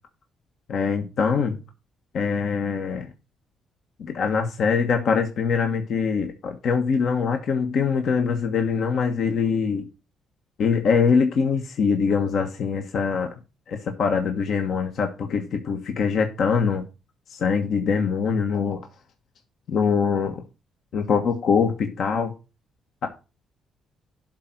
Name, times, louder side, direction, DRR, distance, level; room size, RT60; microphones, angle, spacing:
voice 1, 0.7-1.6 2.1-3.1 4.0-9.9 10.6-13.3 13.7-16.8 17.3-18.8 19.7-20.4 20.9-22.3, left 6 dB, 65° left, 1.3 m, -23 dB
11.5 x 3.9 x 5.9 m
cardioid pair, 90°, 0 cm